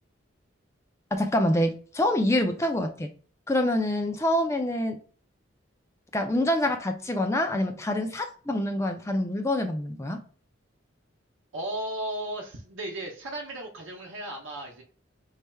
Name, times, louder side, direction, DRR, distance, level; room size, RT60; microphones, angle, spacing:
voice 1, 1.1-3.1 3.5-5.0 6.1-10.2, left 1 dB, 15° left, 0.4 m, -26 dB
voice 2, 11.5-14.8, right 1 dB, 80° right, 0.8 m, -35 dB
4.3 x 3.2 x 2.2 m
head